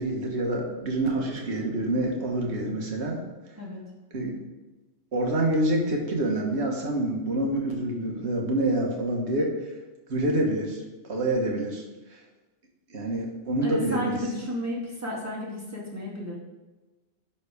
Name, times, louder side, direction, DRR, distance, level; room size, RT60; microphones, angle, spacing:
voice 1, 0.0-3.2 4.1-4.4 5.1-9.5 10.1-10.8 11.1-11.8 12.1-12.2 12.9-14.2, right 1 dB, 60° right, 0 dB, 1.7 m, -27 dB
voice 2, 13.6-16.4, equal, 15° right, -5 dB, 2.2 m, -32 dB
11.5 x 4.2 x 4.9 m, 1.2 s
omnidirectional pair, 1.3 m